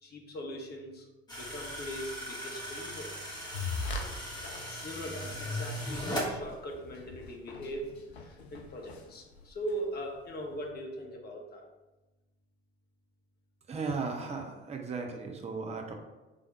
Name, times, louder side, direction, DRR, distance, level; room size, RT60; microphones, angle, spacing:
voice 1, 0.0-3.1 3.9-4.1 4.4-7.9 8.2-11.6, equal, 30° left, 1 dB, 0.9 m, -40 dB
sound 1, 1.3-6.3, equal, 15° left, 1.3 m, -38 dB
sound 2, 3.5-4.0 4.6-4.7 5.3-5.4 5.7-5.8 6.1-9.8, left 3 dB, 80° left, 0.5 m, -40 dB
voice 2, 13.7-15.9, right 4 dB, 20° right, 3 dB, 0.7 m, -36 dB
3.5 x 3.5 x 4.3 m, 1.1 s
figure-of-eight pair, 50°, 32 cm